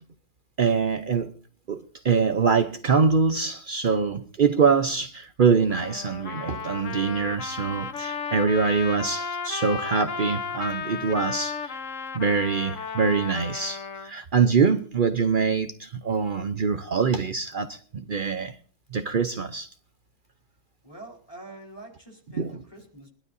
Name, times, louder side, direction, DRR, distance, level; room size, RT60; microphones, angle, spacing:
voice 1, 0.6-1.3 1.7-11.8 12.1-18.6 18.9-19.7 22.4-22.6, right 5 dB, 70° right, 0.4 m, -24 dB
Trumpet, 5.7-14.1, left 6 dB, 50° left, 1.2 m, -34 dB
voice 2, 20.8-23.1, right 2 dB, 10° left, 4.0 m, -45 dB
23.0 x 12.0 x 2.7 m
omnidirectional pair, 2.0 m